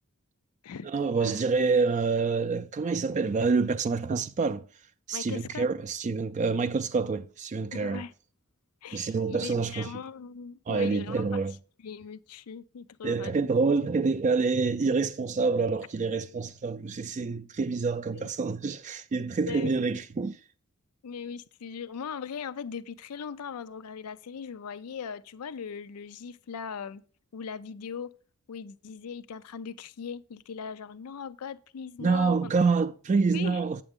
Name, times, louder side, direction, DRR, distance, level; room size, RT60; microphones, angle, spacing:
voice 1, 0.8-4.7 5.1-8.0 8.9-9.9 10.7-11.5 13.0-20.4 32.0-33.8, right 4 dB, 35° right, 0.3 m, -27 dB
voice 2, 5.1-5.7 7.7-8.1 8.8-11.4 11.8-13.4 18.1-18.3 19.5-20.0 21.0-27.0 27.3-28.1 28.5-32.5 33.3-33.6, left 6 dB, 85° left, 0.4 m, -39 dB
8.8 x 7.4 x 3.6 m
head